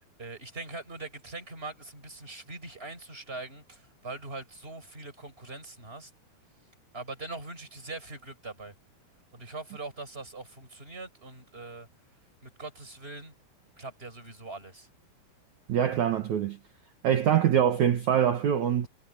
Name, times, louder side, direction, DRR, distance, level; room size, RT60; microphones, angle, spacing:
voice 1, 0.2-6.1 6.9-8.7 9.3-11.9 12.4-13.3 13.8-14.9, right 3 dB, 15° right, 6.8 m, -42 dB
voice 2, 15.7-16.6 17.0-18.9, right 9 dB, 55° right, 2.3 m, -24 dB
omnidirectional pair, 4.8 m